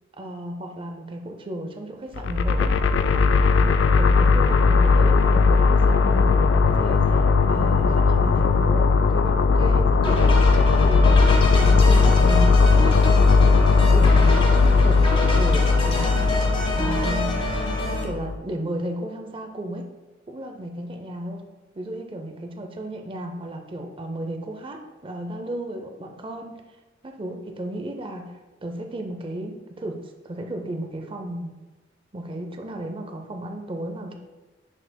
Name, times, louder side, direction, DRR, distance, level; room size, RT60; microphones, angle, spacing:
voice 1, 0.1-10.4 10.8-11.2 11.6-13.0 13.7-15.0 15.3-16.3 16.8-17.4 17.9-19.9 20.3-21.4 21.8-26.6 27.0-28.3 28.6-30.0 30.2-31.5 32.1-34.1, right 1 dB, 25° right, 4 dB, 0.5 m, -34 dB
sound 1, 2.2-18.4, left 4 dB, 65° left, 0.3 m, -18 dB
sound 2, 10.0-18.0, equal, 25° left, 1.0 m, -28 dB
9.7 x 4.7 x 2.2 m, 1.2 s
head